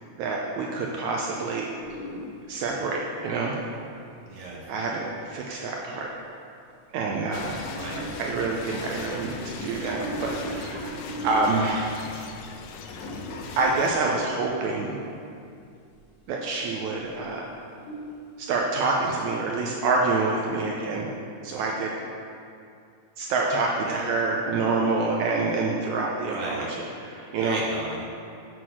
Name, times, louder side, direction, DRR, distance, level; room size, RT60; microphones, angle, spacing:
voice 1, 0.2-1.7 2.5-3.6 4.7-6.1 6.9-7.6 8.0-10.9 11.2-12.0 13.6-15.0 16.3-17.5 18.4-21.1 21.4-21.9 23.2-27.6, right 3 dB, 75° right, -1 dB, 1.9 m, -27 dB
sound 1, 1.8-2.6 3.3-3.4 5.9-6.0 7.6-8.3 9.3-11.7 12.3-12.6 12.9-14.1 15.7-15.9 16.4-16.7 17.2-17.3 17.6-18.2, right 1 dB, 70° left, 3.3 m, -37 dB
voice 2, 4.3-4.6 7.8-8.1 23.9-24.0 26.2-26.7 27.4-28.0, right 2 dB, 55° right, -4 dB, 1.9 m, -34 dB
sound 2, 7.3-13.9, left 4 dB, 85° left, 1.4 m, -39 dB
7.8 x 5.9 x 6.1 m, 2.4 s
omnidirectional pair, 3.7 m